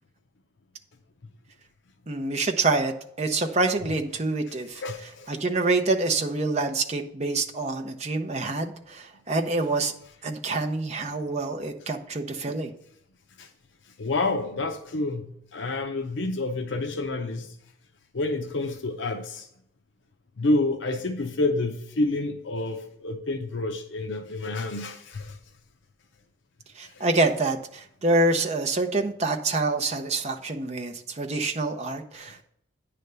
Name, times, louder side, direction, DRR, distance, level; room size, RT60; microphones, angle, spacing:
voice 1, 2.1-2.9 3.2-4.8 5.3-9.9 10.2-12.7 26.8-32.4, right 2 dB, 35° right, 4 dB, 0.6 m, -26 dB
voice 2, 4.8-5.4 13.4-13.5 14.0-17.6 18.1-19.5 20.4-25.4 26.8-27.1 32.2-32.3, left 2 dB, 70° left, 4 dB, 0.6 m, -29 dB
9.4 x 3.4 x 6.6 m, 0.73 s
head